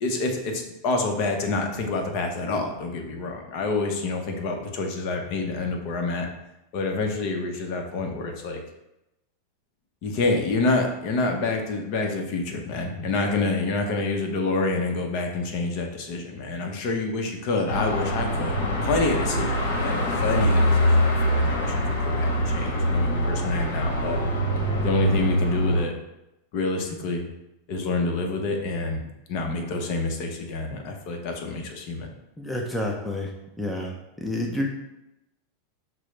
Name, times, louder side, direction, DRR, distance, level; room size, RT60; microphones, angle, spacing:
voice 1, 0.0-6.3 6.7-8.6 10.0-24.2 24.8-25.9 26.5-27.2 27.7-32.1, left 3 dB, 50° left, 3 dB, 0.7 m, -27 dB
Car passing by / Traffic noise roadway noise / Engine, 17.7-25.8, equal, 85° left, 0.9 m, -23 dB
voice 2, 32.4-33.3 33.6-34.7, left 1 dB, 5° left, 0 dB, 0.5 m, -29 dB
6.0 x 2.0 x 3.2 m, 0.90 s
supercardioid pair, 135°, 0 cm